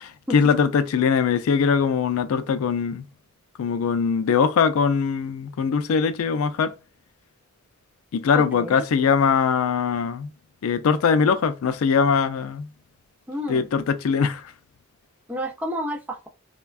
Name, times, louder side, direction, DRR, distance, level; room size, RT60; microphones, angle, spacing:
voice 1, 0.0-3.1 3.6-6.7 8.1-10.3 10.6-12.7 13.5-14.5, left 6 dB, 85° left, 0.4 m, -21 dB
voice 2, 8.3-8.8 13.3-13.7 15.3-16.3, equal, 10° right, 0.4 m, -30 dB
3.3 x 2.2 x 2.3 m
head